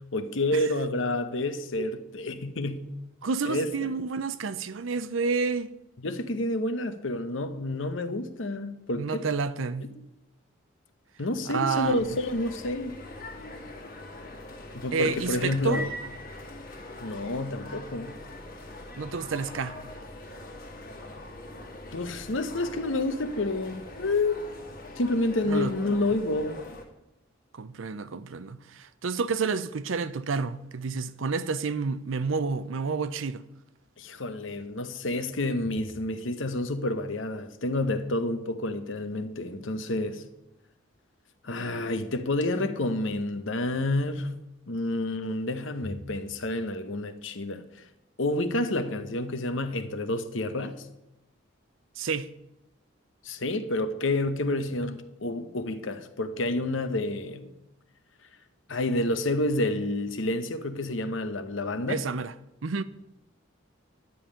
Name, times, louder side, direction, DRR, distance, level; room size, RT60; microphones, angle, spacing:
voice 1, 0.1-2.8 3.4-3.7 6.0-9.2 9.9-10.0 11.2-12.9 14.7-15.9 17.0-18.1 21.9-24.4 25.0-26.6 34.0-40.2 41.4-44.3 44.7-47.6 48.2-50.8 53.2-57.5 58.7-62.0, left 2 dB, 70° left, 1.0 m, -29 dB
voice 2, 3.2-5.7 9.0-10.0 11.5-12.2 14.9-15.9 19.0-19.8 25.5-25.7 27.5-33.4 52.0-52.3 61.9-62.3 62.6-62.8, right 4 dB, 75° right, 0.6 m, -29 dB
sound 1, 11.8-26.8, left 1 dB, 45° left, 1.8 m, -42 dB
11.5 x 5.4 x 8.7 m
head